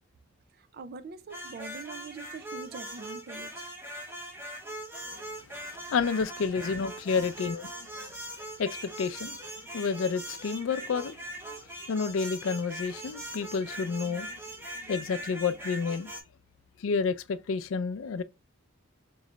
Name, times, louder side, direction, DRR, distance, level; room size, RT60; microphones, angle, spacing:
voice 1, 0.6-3.7, right 4 dB, 50° right, 0.4 m, -43 dB
sound 1, 1.3-16.2, right 1 dB, 10° right, 0.8 m, -41 dB
voice 2, 5.9-8.1 8.6-11.4 11.9-14.4 14.8-16.1 16.8-18.2, left 5 dB, 80° left, 0.4 m, -30 dB
3.8 x 3.1 x 3.1 m
head